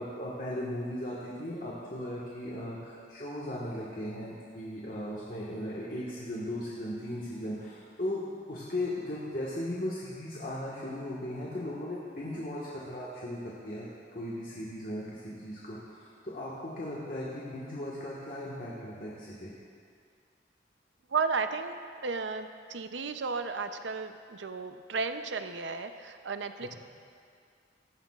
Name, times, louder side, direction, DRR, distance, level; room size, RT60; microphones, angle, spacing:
voice 1, 0.0-13.4 13.6-13.9 14.1-19.5 26.6-26.8, left 1 dB, 45° left, -6 dB, 1.6 m, -37 dB
voice 2, 21.1-21.8 22.0-26.7, right 4 dB, 85° right, 8 dB, 0.7 m, -34 dB
18.0 x 14.0 x 2.4 m, 2.3 s
head